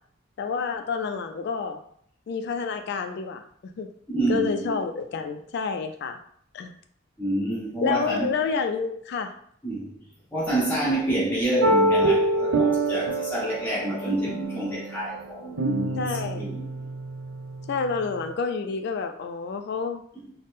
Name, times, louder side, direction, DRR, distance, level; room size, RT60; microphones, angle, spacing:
voice 1, 0.4-1.8 2.3-3.9 4.3-6.2 6.5-6.7 7.8-9.3 15.9-16.5 17.7-20.0, left 5 dB, 50° left, 6 dB, 0.3 m, -29 dB
voice 2, 4.1-4.7 7.2-8.3 9.6-9.9 10.3-16.7, right 1 dB, 10° left, -9 dB, 1.4 m, -28 dB
sound 1, 11.6-18.3, right 2 dB, 70° right, 0.4 m, -26 dB
4.0 x 2.1 x 3.4 m, 0.65 s
head